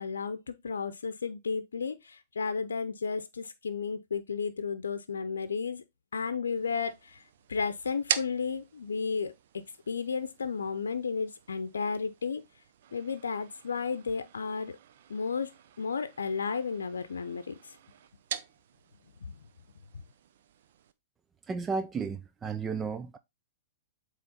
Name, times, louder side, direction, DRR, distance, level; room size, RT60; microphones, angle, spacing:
voice 1, 0.0-5.8 6.1-7.2 7.5-12.4 12.9-14.8 15.1-15.5 15.8-17.8 19.2-19.3, left 5 dB, 80° left, 0.6 m, -33 dB
sound 1, 6.6-20.9, right 9 dB, 60° right, 0.7 m, -43 dB
voice 2, 21.5-23.2, right 5 dB, 20° right, 0.5 m, -33 dB
7.6 x 3.2 x 4.2 m
hypercardioid pair, 115°, 0 cm